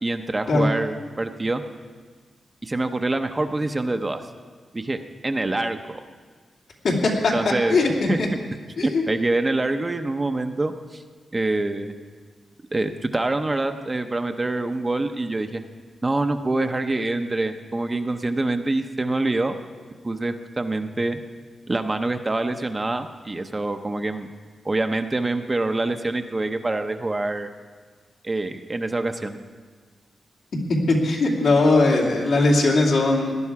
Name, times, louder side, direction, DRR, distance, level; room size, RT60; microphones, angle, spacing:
voice 1, 0.0-1.6 2.6-4.2 4.7-5.0 5.2-6.0 7.3-7.8 8.1-8.2 8.8-11.0 11.3-11.9 12.7-15.6 16.0-19.6 20.0-21.2 21.7-24.3 24.6-27.5 28.2-29.4, right 2 dB, 25° right, 7 dB, 0.8 m, -25 dB
voice 2, 6.8-7.3 7.7-7.9 8.2-8.3 8.8-9.0 30.9-33.4, left 2 dB, 80° left, -2 dB, 2.6 m, -19 dB
18.0 x 11.0 x 4.8 m, 1.5 s
cardioid pair, 90°, 0 cm